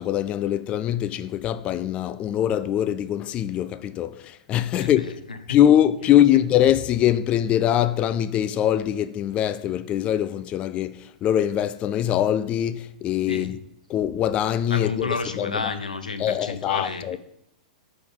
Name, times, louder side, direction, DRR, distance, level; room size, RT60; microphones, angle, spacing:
voice 1, 0.0-5.1 5.5-13.6 13.9-15.1 15.4-15.6 16.2-17.2, left 11 dB, 30° left, 0.3 m, -22 dB
voice 2, 4.7-5.6 13.3-13.5 14.7-17.2, left 3 dB, 90° left, 0.8 m, -31 dB
10.5 x 4.4 x 3.7 m
hypercardioid pair, 115°, 4 cm